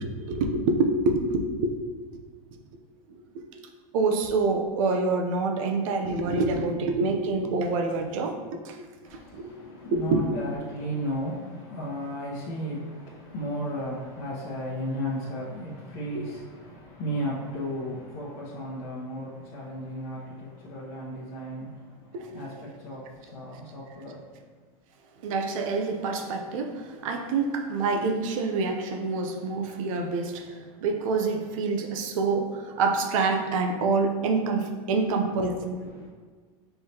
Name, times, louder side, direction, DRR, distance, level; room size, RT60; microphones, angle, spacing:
voice 1, 0.0-1.7 2.1-2.2 2.5-2.6 3.1-3.4 3.9-8.4 8.6-8.8 9.1-9.5 9.9-10.2 16.1-16.2 22.1-22.4 25.2-36.1, right 3 dB, 65° right, 4 dB, 0.7 m, -27 dB
voice 2, 9.0-24.3 35.9-36.1, equal, 45° left, -7 dB, 1.1 m, -35 dB
5.5 x 3.3 x 2.9 m, 1.5 s
supercardioid pair, 150°, 18 cm